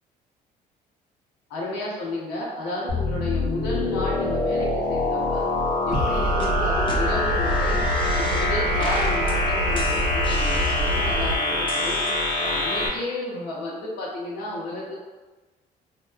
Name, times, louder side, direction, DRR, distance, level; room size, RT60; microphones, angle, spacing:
voice 1, 1.5-5.5 5.9-7.8 8.1-12.0 12.4-14.9, left 1 dB, 90° left, -4 dB, 0.7 m, -32 dB
sound 1, 2.9-12.9, left 2 dB, 50° left, 0.7 m, -25 dB
sound 2, 5.9-6.1 6.4-6.5 6.9-7.0 7.4-8.5 8.8-9.3 9.8-11.2 11.7-12.6, left 3 dB, 30° left, 0.4 m, -36 dB
sound 3, 5.9-11.4, right 1 dB, 60° right, 0.8 m, -27 dB
2.9 x 2.1 x 2.2 m, 1.2 s
cardioid pair, 110°, 17 cm